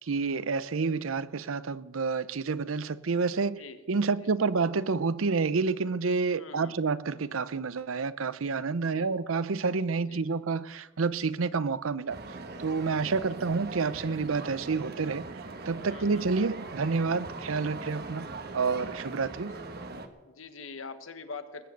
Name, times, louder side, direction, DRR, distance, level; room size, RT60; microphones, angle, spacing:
voice 1, 0.0-3.6 3.9-12.2 12.6-15.3 15.7-18.3 18.5-19.5, right 4 dB, 80° right, 0.6 m, -29 dB
voice 2, 6.4-6.8 8.8-9.1 10.1-10.4 12.9-13.4 15.9-16.3 20.2-21.7, left 4 dB, 80° left, 1.4 m, -44 dB
sound 1, 12.1-20.1, right 3 dB, 50° right, 1.3 m, -41 dB
20.5 x 7.7 x 8.2 m
head